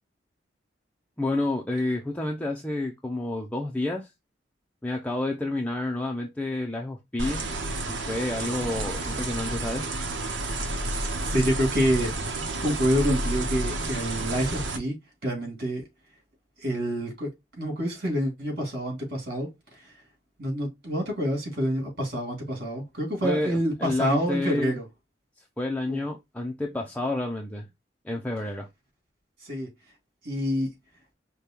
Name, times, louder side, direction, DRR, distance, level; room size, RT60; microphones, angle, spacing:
voice 1, 1.2-4.1 4.8-7.4 7.9-9.9 23.2-24.7 25.6-27.7 28.0-28.7, left 2 dB, 10° left, 0.5 m, -29 dB
sound 1, 7.2-14.8, right 2 dB, 85° right, 0.9 m, -30 dB
voice 2, 11.2-12.1 12.6-15.0 15.2-15.8 16.6-20.0 20.4-24.8 25.9-26.0 29.4-29.7 30.2-30.7, equal, 55° right, 2.6 m, -27 dB
5.2 x 2.2 x 4.4 m
head